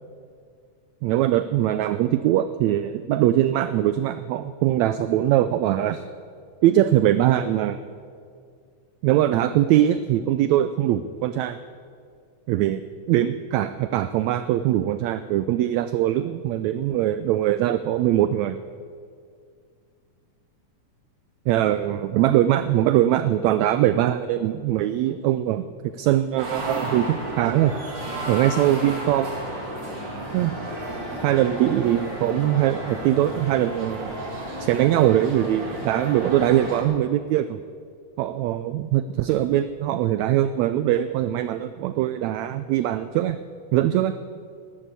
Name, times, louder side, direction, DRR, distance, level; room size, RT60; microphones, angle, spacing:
voice 1, 1.0-6.0 6.6-7.8 9.0-11.6 12.5-12.8 13.1-18.6 21.5-27.7 28.3-29.4 30.3-30.6 31.2-34.2 34.6-37.6 38.2-43.4 43.7-44.2, right 12 dB, 90° right, 12 dB, 1.6 m, -22 dB
sound 1, 26.4-36.8, right 1 dB, 35° right, 2.9 m, -32 dB
13.0 x 12.5 x 8.4 m, 2.2 s
omnidirectional pair, 3.7 m